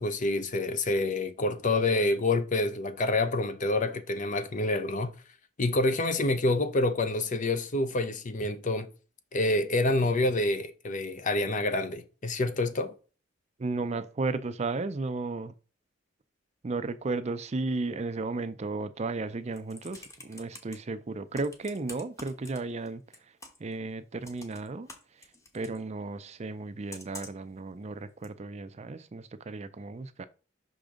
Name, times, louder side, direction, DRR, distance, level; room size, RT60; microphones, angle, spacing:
voice 1, 0.0-5.1 5.6-8.9 9.3-12.9, left 2 dB, 40° left, 0.7 m, -27 dB
voice 2, 13.6-15.5 16.6-23.0 23.6-24.9 25.5-30.3, right 3 dB, 35° right, 0.5 m, -34 dB
Computer keyboard, 19.3-20.8 21.3-22.9 23.1-23.7 24.2-25.8 26.9-27.5 28.2-28.3, left 2 dB, 15° left, 1.1 m, -47 dB
5.9 x 5.1 x 3.7 m
head